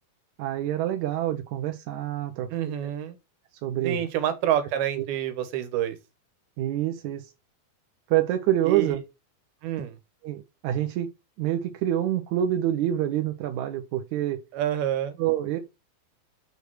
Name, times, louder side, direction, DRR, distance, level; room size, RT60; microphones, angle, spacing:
voice 1, 0.4-2.5 2.8-2.9 3.6-4.0 5.0-5.1 6.6-7.3 8.1-9.0 10.2-11.1 11.4-14.4 15.2-15.6, right 12 dB, 70° right, 1.9 m, -26 dB
voice 2, 2.5-3.2 3.8-6.0 8.6-9.0 9.6-10.0 14.5-15.2, right 11 dB, 90° right, 3.2 m, -28 dB
6.8 x 4.8 x 6.2 m
omnidirectional pair, 4.3 m